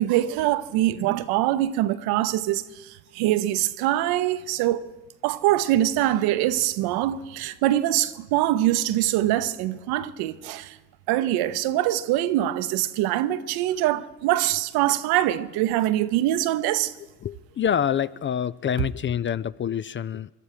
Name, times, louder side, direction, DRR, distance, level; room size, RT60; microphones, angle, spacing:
voice 1, 0.0-4.8 5.2-10.8 11.1-16.9, right 14 dB, 70° right, 0.8 m, -24 dB
voice 2, 17.2-20.3, left 9 dB, 30° left, 0.4 m, -26 dB
23.5 x 12.5 x 4.9 m
hypercardioid pair, 50°, 39 cm